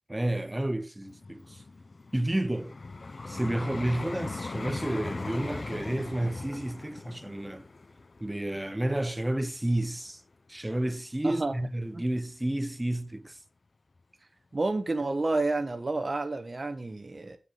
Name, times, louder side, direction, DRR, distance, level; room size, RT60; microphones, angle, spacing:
voice 1, 0.1-1.6 2.1-2.8 3.3-7.7 8.2-10.2 10.5-13.4, right 1 dB, 15° right, 0.6 m, -31 dB
Vehicle, 1.0-10.1 10.7-10.9, left 3 dB, 55° left, 0.5 m, -40 dB
voice 2, 11.2-11.5 11.9-12.0 14.5-17.4, right 2 dB, 45° right, 1.0 m, -30 dB
8.1 x 5.3 x 5.5 m
wide cardioid pair, 85°, 0 cm